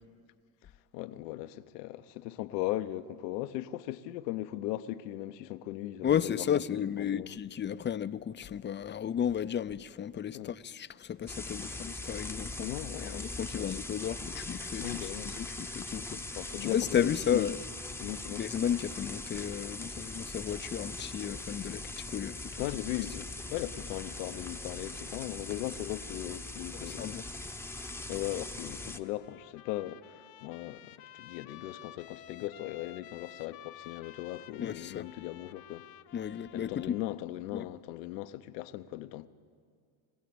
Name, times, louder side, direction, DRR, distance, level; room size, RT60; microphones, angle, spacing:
voice 1, 0.9-6.5 6.7-7.4 10.3-10.5 12.6-13.3 13.5-13.8 14.8-15.4 16.3-17.5 18.0-18.4 22.6-27.2 28.1-35.9 36.5-39.3, left 15 dB, 90° left, 0.9 m, -38 dB
voice 2, 6.0-12.7 13.0-14.9 15.2-16.2 16.6-17.6 18.4-22.6 26.9-27.2 34.6-35.1 36.1-37.0 37.5-37.7, left 9 dB, 25° left, 0.5 m, -33 dB
sound 1, 11.3-29.0, left 2 dB, 5° left, 0.9 m, -41 dB
Trumpet, 29.0-37.2, left 12 dB, 50° left, 0.9 m, -52 dB
22.0 x 16.0 x 8.6 m
supercardioid pair, 90°, 47 cm